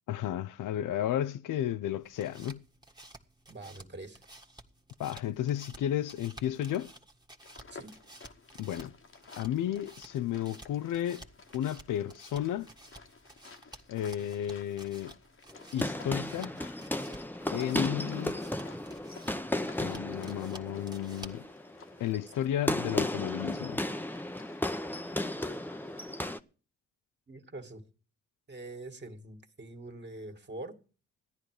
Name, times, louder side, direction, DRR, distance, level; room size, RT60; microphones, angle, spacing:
voice 1, 0.1-2.6 5.0-6.9 8.6-8.9 9.4-11.2 11.5-12.7 13.9-15.1 15.7-16.5 17.5-18.4 19.8-21.5 22.0-23.8, left 11 dB, 70° left, 0.6 m, -33 dB
sound 1, 1.9-21.5, right 1 dB, 10° right, 1.6 m, -53 dB
voice 2, 3.5-4.3 7.7-8.0 27.3-27.8 28.5-30.8, right 2 dB, 35° right, 2.2 m, -44 dB
sound 2, 7.4-26.3, left 4 dB, 40° left, 1.3 m, -55 dB
sound 3, 15.5-26.4, left 1 dB, 5° left, 0.8 m, -34 dB
14.0 x 10.0 x 4.9 m
supercardioid pair, 45°, 32 cm